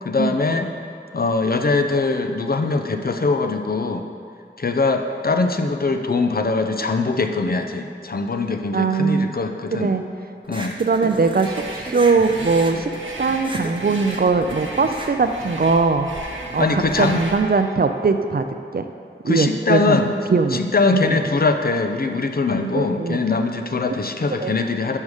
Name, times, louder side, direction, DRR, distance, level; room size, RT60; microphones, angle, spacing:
voice 1, 0.0-0.7 1.1-4.1 4.6-9.9 10.5-10.8 16.6-17.2 19.3-20.1 20.5-25.0, left 3 dB, 50° left, 6 dB, 0.5 m, -22 dB
voice 2, 8.7-9.3 9.7-10.0 10.8-12.9 13.2-16.1 16.5-18.5 18.7-18.8 19.2-20.0 20.3-20.6 20.9-21.2 22.7-23.2 23.9-24.0 24.4-24.6, right 4 dB, 50° right, 7 dB, 0.4 m, -20 dB
sound 1, 10.4-16.2, right 1 dB, 25° right, 0.8 m, -35 dB
sound 2, 11.4-17.5, right 1 dB, 75° right, 1.1 m, -35 dB
5.4 x 4.8 x 6.4 m, 2.3 s
wide cardioid pair, 45°, 20 cm